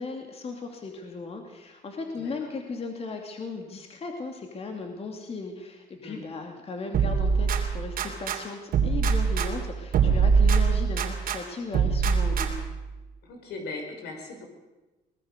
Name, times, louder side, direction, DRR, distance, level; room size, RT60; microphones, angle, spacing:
voice 1, 0.0-12.6, left 4 dB, 35° left, 3 dB, 2.6 m, -37 dB
voice 2, 2.2-2.5 6.0-6.3 13.2-14.5, left 3 dB, 75° left, 3 dB, 5.4 m, -39 dB
sound 1, 6.9-8.4 8.7-11.4 11.7-12.8, right 6 dB, 60° right, 3.0 m, -23 dB
22.5 x 19.5 x 6.7 m, 1.1 s
cardioid pair, 110°, 17 cm